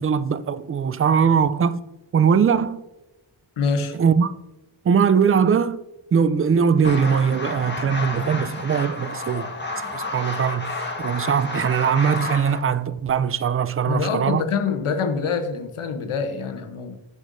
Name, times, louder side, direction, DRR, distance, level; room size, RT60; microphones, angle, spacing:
voice 1, 0.0-1.8 2.1-2.8 3.9-4.3 4.8-5.8 6.1-9.5 9.9-14.4, right 7 dB, 30° right, 0.3 m, -21 dB
voice 2, 3.6-4.0 13.9-17.0, left 5 dB, 80° left, 0.9 m, -25 dB
sound 1, 6.8-12.6, left 2 dB, 20° left, 1.4 m, -30 dB
6.5 x 6.3 x 2.6 m
cardioid pair, 50°, 50 cm